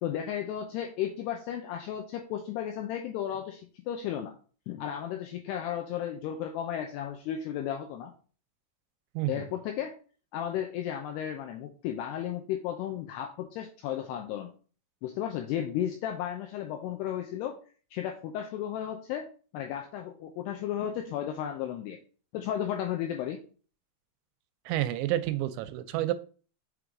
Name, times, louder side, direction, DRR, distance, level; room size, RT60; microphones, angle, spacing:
voice 1, 0.0-4.3 4.7-8.1 9.3-9.9 10.3-14.5 15.0-17.6 17.9-19.3 19.5-22.0 22.3-23.4, left 10 dB, 85° left, 3 dB, 2.4 m, -34 dB
voice 2, 24.7-26.1, right 14 dB, 85° right, 12 dB, 2.8 m, -29 dB
6.7 x 4.6 x 3.7 m, 0.39 s
omnidirectional pair, 5.3 m